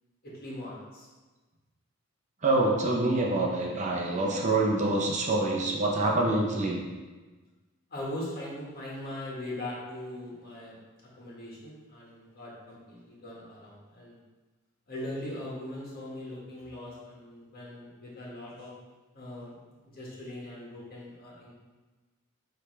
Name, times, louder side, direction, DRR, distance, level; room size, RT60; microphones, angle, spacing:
voice 1, 0.2-1.1 7.9-14.2 14.9-18.7 19.1-19.6 19.8-21.5, left 1 dB, 50° left, -5 dB, 1.7 m, -40 dB
voice 2, 2.4-6.8, right 2 dB, 35° right, -1 dB, 0.8 m, -26 dB
8.9 x 3.4 x 3.3 m, 1.3 s
head